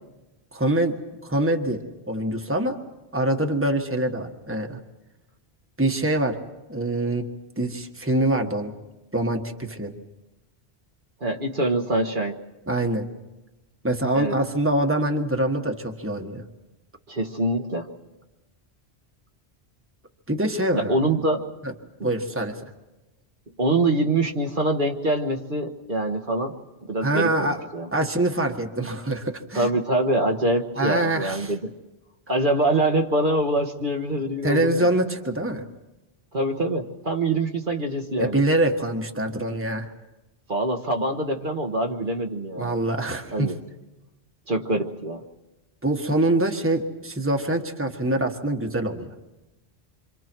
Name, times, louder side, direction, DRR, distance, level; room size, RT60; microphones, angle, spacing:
voice 1, 0.5-2.8 3.1-4.8 5.8-7.3 7.6-8.7 9.1-9.9 12.7-13.1 13.8-16.4 20.3-21.0 21.6-21.7 22.0-22.6 27.0-27.6 27.9-29.7 30.8-31.5 34.4-35.6 38.2-39.9 42.6-43.5 45.8-49.1, right 1 dB, 10° right, 3 dB, 1.5 m, -24 dB
voice 2, 11.2-12.4 14.1-14.3 17.1-17.9 20.7-21.4 22.0-22.1 23.6-26.6 26.9-27.9 29.5-31.7 32.3-34.9 36.3-38.4 40.5-42.7 43.3-43.6 44.5-45.2, right 2 dB, 50° right, 2 dB, 1.5 m, -24 dB
27.5 x 26.0 x 4.6 m, 1.0 s
omnidirectional pair, 1.1 m